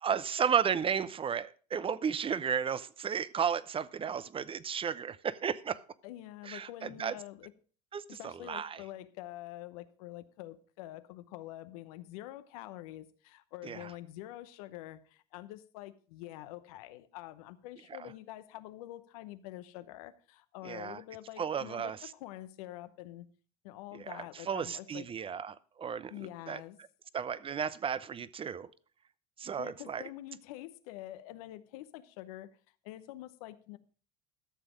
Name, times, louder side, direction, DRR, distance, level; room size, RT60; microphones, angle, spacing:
voice 1, 0.0-5.8 6.5-7.1 7.9-8.8 13.6-13.9 18.0-18.1 20.6-21.0 21.4-22.0 23.9-26.1 26.5-26.6 27.1-28.7 29.4-30.0, right 7 dB, 30° right, 0.7 m, -33 dB
voice 2, 6.0-7.5 8.1-23.3 23.6-25.1 26.1-26.8 29.6-32.5 32.8-33.8, left 15 dB, 80° left, 0.9 m, -46 dB
13.0 x 7.1 x 5.0 m
supercardioid pair, 85°, 18 cm